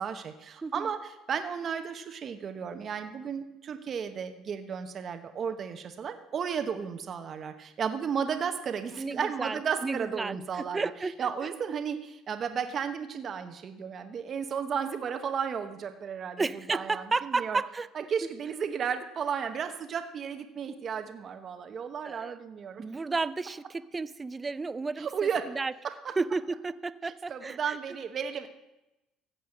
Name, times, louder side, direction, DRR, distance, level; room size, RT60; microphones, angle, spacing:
voice 1, 0.0-10.9 11.2-16.4 16.7-17.6 17.9-22.8 25.0-25.4 27.0-28.5, right 7 dB, 40° right, 7 dB, 1.0 m, -34 dB
voice 2, 9.0-11.3 16.4-17.9 22.0-22.3 22.8-25.7 26.2-27.8, right 3 dB, 20° right, 17 dB, 0.5 m, -32 dB
15.5 x 5.6 x 7.7 m, 0.94 s
cardioid pair, 115°, 0 cm